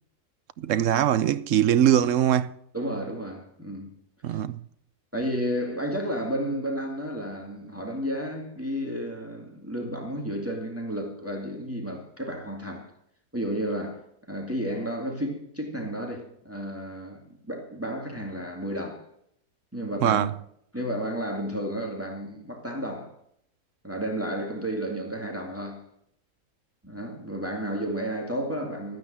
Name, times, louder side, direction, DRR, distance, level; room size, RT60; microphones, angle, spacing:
voice 1, 0.6-2.5 4.2-4.6 20.0-20.3, right 10 dB, 60° right, 0.9 m, -22 dB
voice 2, 2.7-4.0 4.3-4.4 5.1-12.9 13.3-14.0 14.3-19.0 19.7-20.2 20.7-23.1 23.8-25.9 26.8-29.0, equal, 10° right, 2.2 m, -32 dB
13.5 x 9.4 x 7.5 m
omnidirectional pair, 1.7 m